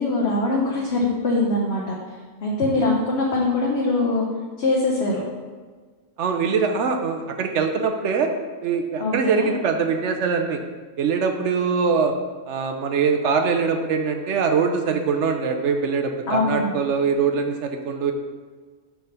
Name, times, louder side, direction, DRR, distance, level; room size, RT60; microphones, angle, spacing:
voice 1, 0.0-1.9 2.4-4.2 4.6-5.2 9.0-9.5 16.3-16.7, left 2 dB, 55° left, -3 dB, 1.0 m, -22 dB
voice 2, 6.2-8.3 8.6-10.6 11.0-12.1 12.5-18.1, right 5 dB, 65° right, 5 dB, 0.8 m, -23 dB
5.9 x 3.4 x 5.7 m, 1.5 s
omnidirectional pair, 1.5 m